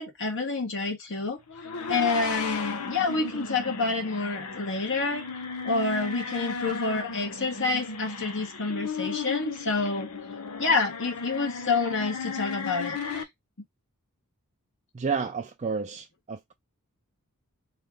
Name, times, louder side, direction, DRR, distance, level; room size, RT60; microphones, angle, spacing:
voice 1, 0.0-1.4 1.9-5.2 5.6-10.1 10.6-13.0, left 3 dB, 60° left, 1.5 m, -28 dB
sound 1, 1.5-13.2, left 5 dB, 85° left, 0.8 m, -35 dB
voice 2, 14.9-16.5, right 5 dB, 30° right, 0.4 m, -31 dB
3.3 x 3.0 x 3.7 m
head